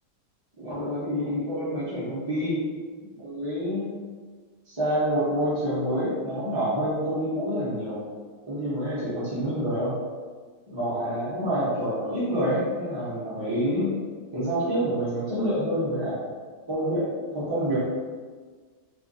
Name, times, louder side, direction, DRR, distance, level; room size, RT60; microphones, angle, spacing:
voice 1, 0.6-2.6 3.2-3.9 4.7-8.0 8.5-10.0 10.7-13.9 14.3-16.3 16.7-17.8, equal, 25° right, -10 dB, 0.5 m, -27 dB
3.2 x 2.4 x 3.9 m, 1.5 s
omnidirectional pair, 1.9 m